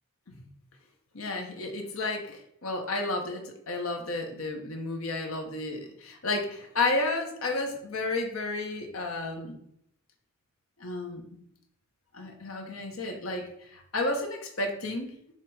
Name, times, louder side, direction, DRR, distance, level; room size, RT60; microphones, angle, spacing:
voice 1, 1.1-9.6 10.8-11.4 12.1-15.1, left 2 dB, 85° left, 4 dB, 1.1 m, -32 dB
6.9 x 3.0 x 4.8 m, 0.71 s
head